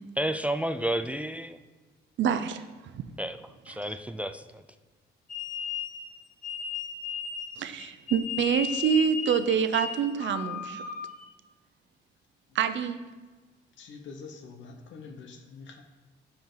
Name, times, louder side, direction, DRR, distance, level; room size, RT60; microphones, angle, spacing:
voice 1, 0.2-1.6 3.2-3.4 3.7-4.6, right 1 dB, 5° right, 10 dB, 0.3 m, -31 dB
voice 2, 2.2-2.6 7.6-10.8 12.5-13.0, right 7 dB, 70° right, 10 dB, 0.6 m, -26 dB
sound 1, 5.3-11.3, left 7 dB, 40° left, 1.1 m, -35 dB
voice 3, 13.8-15.8, left 4 dB, 70° left, 4 dB, 1.1 m, -45 dB
12.0 x 4.6 x 3.9 m, 1.3 s
cardioid pair, 90°, 20 cm